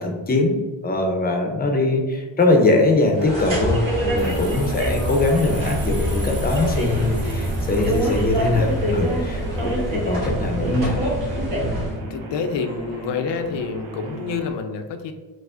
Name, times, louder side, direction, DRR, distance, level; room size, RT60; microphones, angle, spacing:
voice 1, 0.0-11.0 11.6-11.8, left 2 dB, 20° left, 2 dB, 0.5 m, -22 dB
sound 1, 3.1-12.0, equal, 65° right, 1.3 m, -25 dB
sound 2, 4.2-9.0, right 4 dB, 25° right, 0.7 m, -42 dB
sound 3, 6.9-14.5, right 3 dB, 85° right, 0.8 m, -36 dB
voice 2, 9.5-9.8 12.0-15.1, left 5 dB, 65° left, 7 dB, 0.5 m, -28 dB
4.7 x 2.0 x 2.5 m, 1.3 s
cardioid pair, 105°, 47 cm